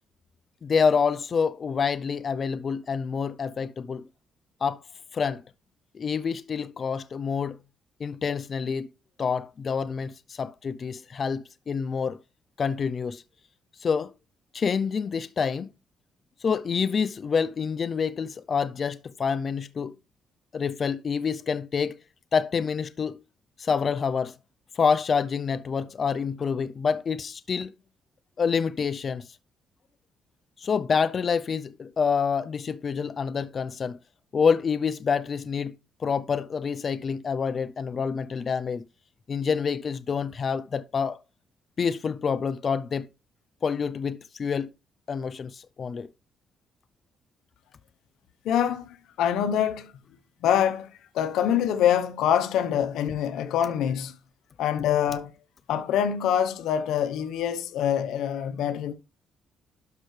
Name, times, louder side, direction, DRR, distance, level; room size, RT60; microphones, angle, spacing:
voice 1, 0.6-4.0 4.6-4.8 5.1-5.4 5.9-7.6 8.0-8.9 9.2-12.2 12.6-13.2 13.8-14.1 14.5-15.7 16.4-19.9 20.5-22.0 22.3-23.2 23.6-24.3 24.7-27.7 28.4-29.4 30.6-34.0 34.3-35.7 36.0-38.8 39.3-41.2 41.8-43.1 43.6-44.7 45.1-46.1, left 6 dB, 45° left, 0.5 m, -27 dB
voice 2, 48.4-49.9 50.4-54.2 54.6-55.3 55.7-58.9, left 9 dB, 85° left, 0.9 m, -25 dB
12.0 x 5.7 x 3.2 m
cardioid pair, 90°, 0 cm